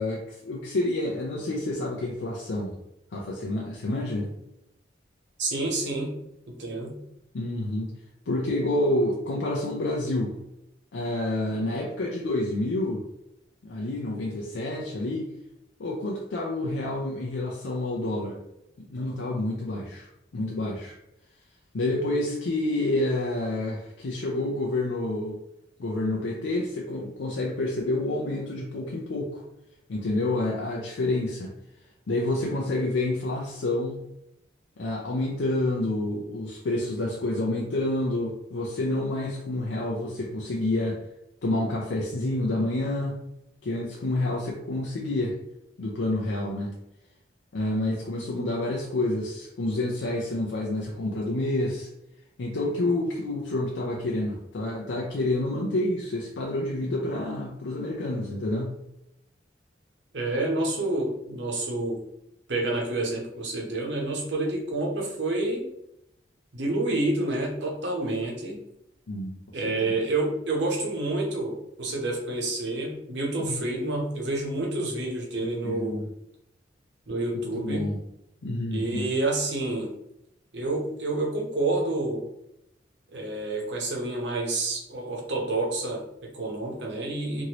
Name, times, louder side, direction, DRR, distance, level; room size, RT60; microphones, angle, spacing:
voice 1, 0.0-2.8 3.1-4.3 7.3-7.9 8.3-10.4 10.9-13.0 13.6-15.3 15.8-18.4 18.9-20.1 20.3-21.0 21.7-25.4 25.8-29.4 29.9-31.5 32.1-34.0 34.8-41.0 41.4-43.2 43.6-45.4 45.8-46.8 47.5-51.9 52.4-58.7 69.1-70.0 73.5-73.6 75.4-76.1 77.5-78.0 78.4-79.1, left 2 dB, 80° left, -2 dB, 0.5 m, -28 dB
voice 2, 5.4-6.1 6.5-7.0 60.1-62.0 62.5-65.7 66.5-68.6 69.5-76.0 77.1-77.8 78.7-79.9 80.5-82.3 83.1-87.4, right 2 dB, 70° right, -1 dB, 0.9 m, -28 dB
2.9 x 2.6 x 2.9 m, 0.82 s
head